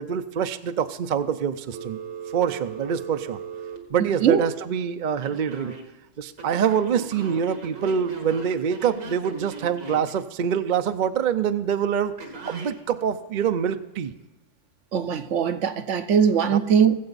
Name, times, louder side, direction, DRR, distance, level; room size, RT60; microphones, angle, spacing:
voice 1, 0.0-2.0 2.3-3.4 3.9-5.8 6.2-12.1 12.4-14.1 16.5-16.6, right 8 dB, 50° right, 0.6 m, -25 dB
Telephone, 1.7-4.5 5.2-5.8 6.4-10.1 12.2-12.7, right 5 dB, 85° right, 2.1 m, -38 dB
voice 2, 4.0-4.4 14.9-17.0, right 7 dB, 70° right, 1.0 m, -21 dB
19.5 x 7.9 x 4.1 m
omnidirectional pair, 1.4 m